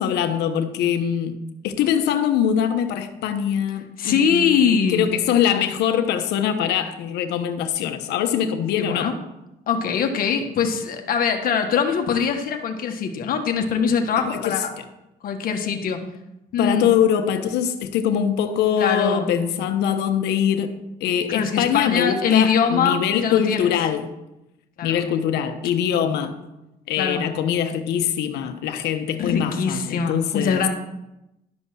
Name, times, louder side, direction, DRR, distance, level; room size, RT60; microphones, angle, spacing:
voice 1, 0.0-1.3 1.6-9.1 14.2-14.5 16.6-24.1 24.8-26.3 26.9-30.6, left 9 dB, 80° left, 1.1 m, -23 dB
voice 2, 4.0-5.0 8.8-9.2 9.7-14.7 15.2-16.0 16.5-16.9 18.8-19.3 21.3-23.7 24.8-25.0 27.0-27.3 29.2-30.7, left 6 dB, 60° left, 1.4 m, -22 dB
12.0 x 5.4 x 6.4 m
cardioid pair, 110°, 17 cm